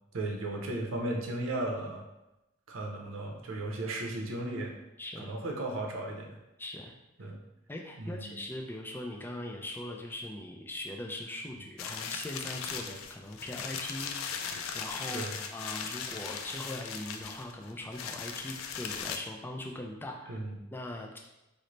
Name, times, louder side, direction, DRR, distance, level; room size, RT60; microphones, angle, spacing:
voice 1, 0.1-2.1 2.7-4.7 5.2-6.4 7.2-7.4 8.0-8.4 15.1-15.4 20.3-20.6, right 2 dB, 85° right, 1 dB, 0.6 m, -35 dB
voice 2, 5.0-5.3 6.6-6.9 7.7-15.3 15.5-20.4 20.7-21.2, left 1 dB, 10° left, 1 dB, 0.3 m, -41 dB
paper bag, 11.8-19.2, left 6 dB, 90° left, 0.3 m, -38 dB
3.1 x 2.1 x 3.9 m, 0.96 s
head